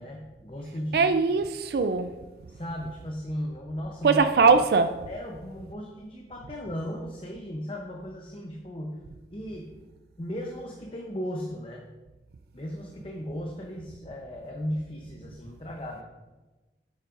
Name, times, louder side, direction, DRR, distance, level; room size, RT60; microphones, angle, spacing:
voice 1, 0.0-1.5 2.5-4.3 5.1-9.0 9.3-9.7 10.2-11.9 12.5-16.0, equal, 30° left, 0.7 m, -36 dB
voice 2, 0.9-2.1 4.0-5.1, right 4 dB, 60° right, 0.3 m, -21 dB
9.0 x 7.1 x 2.5 m
head